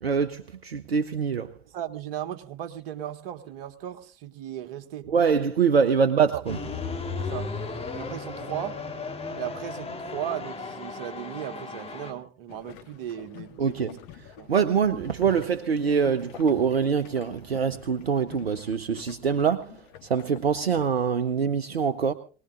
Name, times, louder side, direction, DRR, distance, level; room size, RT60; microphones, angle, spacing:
voice 1, 0.0-1.5 5.1-6.6 13.6-13.9 14.2-22.1, right 6 dB, 90° right, 0.7 m, -24 dB
voice 2, 1.7-5.1 6.0-6.4 7.2-7.5 7.9-8.8 9.4-14.0 14.4-14.5, right 11 dB, 65° right, 1.7 m, -36 dB
sound 1, 6.5-12.1, left 4 dB, 20° left, 3.6 m, -35 dB
sound 2, 12.5-20.9, left 10 dB, 60° left, 2.1 m, -48 dB
23.5 x 19.0 x 2.5 m
figure-of-eight pair, 70°, 30 cm